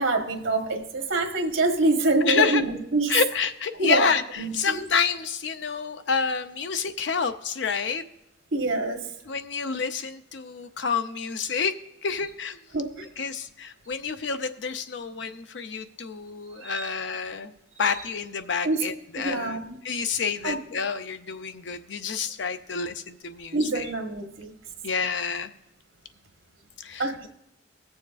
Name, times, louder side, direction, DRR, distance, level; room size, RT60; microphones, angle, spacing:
voice 1, 0.0-3.1 3.8-4.1 4.4-4.8 8.5-9.1 12.7-13.1 16.6-16.9 17.8-17.9 18.6-18.8 19.1-19.8 20.4-20.6 23.5-24.5 27.0-27.3, right 2 dB, 90° right, 4 dB, 1.3 m, -26 dB
voice 2, 2.2-2.6 3.1-8.0 9.3-12.6 13.2-17.5 17.8-19.6 19.8-23.9 24.8-25.5 26.8-27.3, left 5 dB, 75° left, 9 dB, 0.6 m, -28 dB
21.0 x 7.1 x 2.4 m, 0.87 s
head